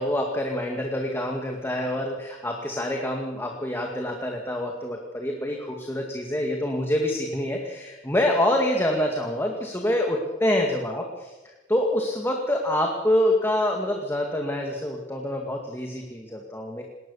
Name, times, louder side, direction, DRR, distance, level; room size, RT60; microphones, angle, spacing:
voice 1, 0.0-11.1 11.7-16.8, left 1 dB, 15° left, 1 dB, 2.1 m, -26 dB
19.5 x 19.0 x 7.2 m, 1.1 s
head